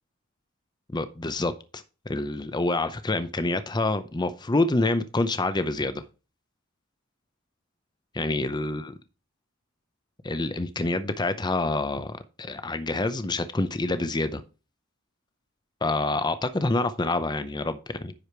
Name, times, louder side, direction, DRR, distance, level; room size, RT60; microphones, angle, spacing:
voice 1, 0.9-6.0 8.1-9.0 10.2-14.4 15.8-18.1, left 2 dB, 20° left, 11 dB, 0.6 m, -27 dB
9.9 x 5.0 x 4.5 m, 0.32 s
head